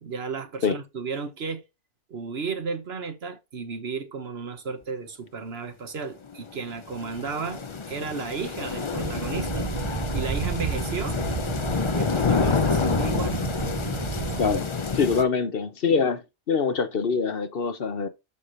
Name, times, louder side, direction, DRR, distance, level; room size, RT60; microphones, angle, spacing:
voice 1, 0.0-1.6 2.1-7.6 7.9-9.7 10.1-11.2 11.9-13.4, right 5 dB, 65° right, 1.3 m, -33 dB
sound 1, 6.3-15.2, left 5 dB, 30° left, 0.6 m, -28 dB
sound 2, 8.9-14.6, right 7 dB, 45° right, 0.4 m, -32 dB
voice 2, 14.9-18.1, left 5 dB, 55° left, 1.1 m, -24 dB
12.0 x 4.9 x 2.6 m
omnidirectional pair, 1.2 m